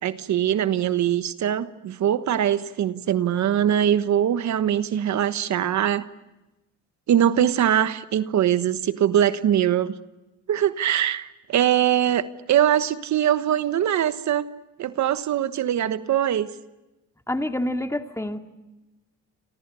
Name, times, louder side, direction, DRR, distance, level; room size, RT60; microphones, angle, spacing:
voice 1, 0.0-6.0 7.1-10.0 10.5-14.4 14.8-16.5, right 10 dB, 65° right, 12 dB, 1.3 m, -22 dB
voice 2, 17.3-18.4, left 1 dB, 10° left, 6 dB, 2.2 m, -27 dB
29.0 x 27.0 x 7.0 m, 1.0 s
cardioid pair, 90°, 30 cm